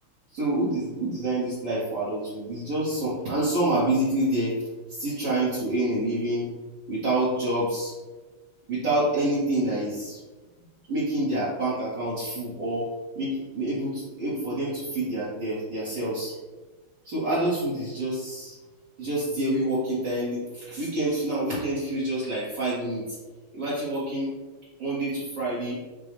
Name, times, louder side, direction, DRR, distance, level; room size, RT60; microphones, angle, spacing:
voice 1, 0.3-4.5 5.0-6.5 6.9-7.9 8.7-10.2 10.9-12.9 13.1-16.3 17.0-18.6 19.0-23.2 23.5-24.3 24.8-25.8, right 1 dB, 55° right, -10 dB, 1.7 m, -27 dB
6.3 x 2.3 x 3.3 m, 1.2 s
omnidirectional pair, 2.4 m